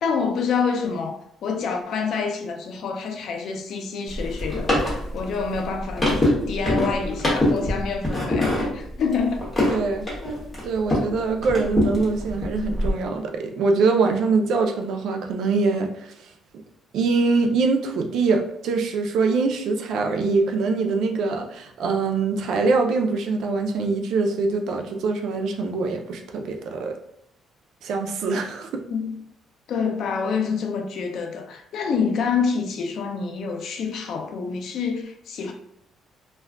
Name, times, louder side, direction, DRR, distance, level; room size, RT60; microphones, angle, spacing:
voice 1, 0.0-9.5 28.9-29.2 29.7-35.5, left 5 dB, 60° left, 0.4 m, -27 dB
sound 1, 4.1-11.1 11.4-12.9, left 1 dB, 15° left, 1.0 m, -24 dB
voice 2, 9.7-10.1 10.6-16.2 16.9-27.0 27.8-28.8, right 4 dB, 70° right, 0.4 m, -23 dB
2.4 x 2.2 x 3.3 m
cardioid pair, 135°, 0 cm